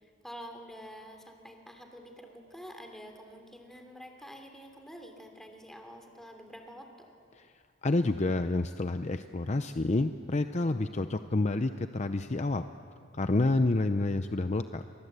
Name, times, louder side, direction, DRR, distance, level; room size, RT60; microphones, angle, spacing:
voice 1, 0.0-7.1, equal, ahead, 4 dB, 3.1 m, -48 dB
voice 2, 7.8-12.6 13.2-14.8, left 2 dB, 35° left, 9 dB, 0.6 m, -28 dB
29.5 x 24.5 x 8.2 m, 2.4 s
head